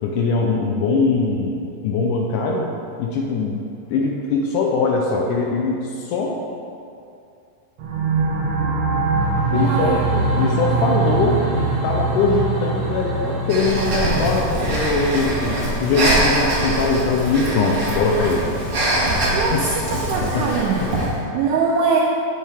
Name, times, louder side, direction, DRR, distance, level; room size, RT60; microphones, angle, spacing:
voice 1, 0.0-2.7 3.0-3.6 3.9-6.4 9.5-10.0 10.4-18.5 19.5-19.6 20.2-21.1, left 4 dB, 80° left, 0 dB, 1.9 m, -22 dB
sound 1, 7.8-19.1, right 3 dB, 65° right, 1.6 m, -24 dB
sound 2, 9.5-20.9, left 2 dB, 55° left, 2.4 m, -34 dB
voice 2, 9.5-10.2 19.3-20.9 21.3-22.0, right 5 dB, 90° right, -1 dB, 1.8 m, -22 dB
Breathing, 13.5-21.2, right 1 dB, 45° right, 1.5 m, -23 dB
8.4 x 7.3 x 3.4 m, 2.5 s
omnidirectional pair, 4.1 m